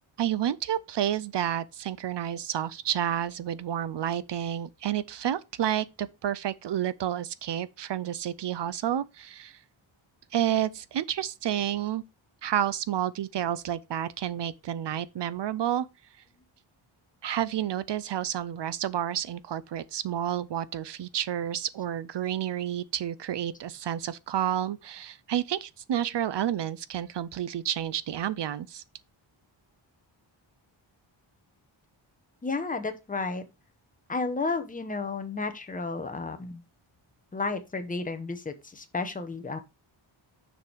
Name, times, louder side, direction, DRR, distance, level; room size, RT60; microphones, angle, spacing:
voice 1, 0.2-9.6 10.3-12.0 12.4-15.9 17.2-28.8, right 10 dB, 60° right, 0.5 m, -30 dB
voice 2, 32.4-33.4 34.1-36.6 37.3-39.6, left 3 dB, 15° left, 0.9 m, -32 dB
6.7 x 5.2 x 4.6 m
wide cardioid pair, 160°, 48 cm